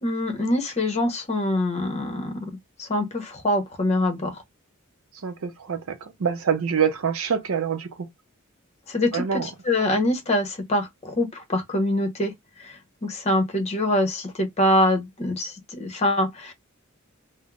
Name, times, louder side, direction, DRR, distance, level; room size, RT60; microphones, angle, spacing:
voice 1, 0.0-4.4 8.9-12.3 12.6-16.5, left 1 dB, 30° left, 0.8 m, -24 dB
voice 2, 5.2-8.1 9.1-9.5, right 7 dB, 80° right, 0.6 m, -26 dB
3.4 x 2.0 x 2.2 m
head